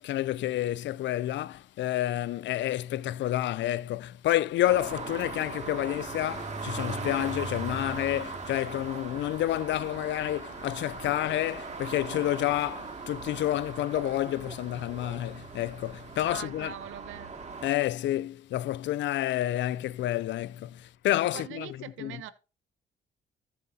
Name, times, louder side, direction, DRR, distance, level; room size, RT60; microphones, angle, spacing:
voice 1, 0.0-16.7 17.6-22.2, left 14 dB, 65° left, 0.4 m, -29 dB
sound 1, 4.6-17.7, right 4 dB, 35° right, 2.2 m, -39 dB
voice 2, 16.2-17.3 21.3-22.3, right 11 dB, 85° right, 0.9 m, -42 dB
14.5 x 7.2 x 2.8 m
cardioid pair, 90°, 20 cm